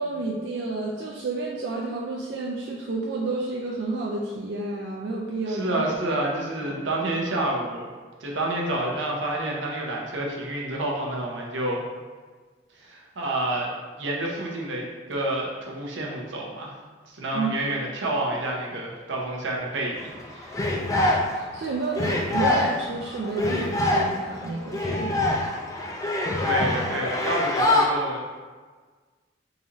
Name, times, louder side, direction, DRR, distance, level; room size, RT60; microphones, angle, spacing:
voice 1, 0.0-5.8 6.6-6.7 17.3-17.5 21.5-25.3, right 3 dB, 65° right, -2 dB, 0.4 m, -30 dB
voice 2, 5.5-7.9 8.2-11.8 12.7-16.8 17.1-20.5 26.4-28.4, right 1 dB, 90° right, -2 dB, 0.8 m, -29 dB
sound 1, 19.9-21.6 21.9-27.9, left 2 dB, 20° left, 0.3 m, -24 dB
4.0 x 2.5 x 3.0 m, 1.4 s
head